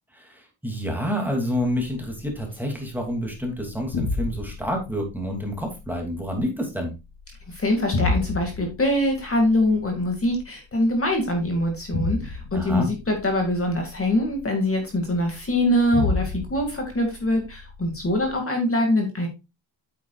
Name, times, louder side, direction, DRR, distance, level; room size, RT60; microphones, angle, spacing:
voice 1, 0.1-6.9 12.5-12.9, equal, 5° right, 1 dB, 2.7 m, -28 dB
sound 1, 2.3-18.3, left 3 dB, 60° left, 3.0 m, -34 dB
voice 2, 7.5-19.3, left 1 dB, 30° left, 3 dB, 2.3 m, -23 dB
8.9 x 8.2 x 2.4 m, 0.26 s
wide cardioid pair, 135°, 45 cm